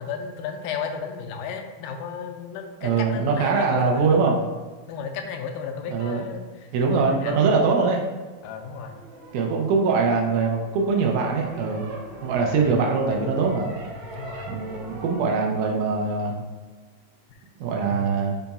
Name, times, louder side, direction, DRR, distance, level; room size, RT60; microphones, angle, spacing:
voice 1, 0.0-4.3 4.9-7.6 8.4-9.0 12.5-12.7 14.0-14.5 17.3-17.4 17.9-18.2, left 6 dB, 85° left, 4 dB, 2.0 m, -34 dB
voice 2, 2.8-4.3 5.9-6.2 6.7-8.1 9.3-11.9 12.2-13.7 14.5-16.4 17.6-18.3, right 5 dB, 90° right, 0 dB, 2.1 m, -22 dB
sound 1, 8.2-15.3, right 1 dB, 75° right, 2.1 m, -41 dB
5.7 x 2.3 x 4.0 m, 1.3 s
omnidirectional pair, 3.5 m